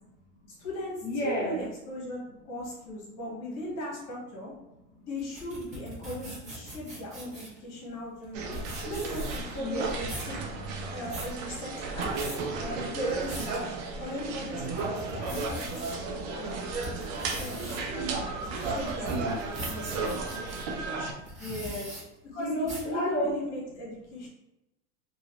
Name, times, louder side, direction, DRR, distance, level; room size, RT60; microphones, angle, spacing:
voice 1, 0.5-4.5 5.1-8.5 8.8-10.3 10.9-12.1 12.6-13.7 14.0-18.1 18.6-20.2 22.2-24.3, equal, 40° left, -4 dB, 1.5 m, -38 dB
voice 2, 1.0-1.6 5.0-5.1 9.6-9.9 16.0-16.5 19.6-21.1 21.4-22.0 22.4-23.3, equal, 20° left, -9 dB, 0.7 m, -34 dB
sound 1, 5.2-7.6 8.2-8.3 8.5-9.6 9.9-10.3 10.8-11.3 11.9-12.4 12.9-13.6 14.1-14.2 14.6-15.9 16.4-20.6 21.2-22.0 22.6-22.9, right 1 dB, 15° right, 1.0 m, -40 dB
sound 2, 8.3-21.1, right 3 dB, 65° right, 0.8 m, -34 dB
3.0 x 2.7 x 2.9 m, 0.90 s
supercardioid pair, 150°, 41 cm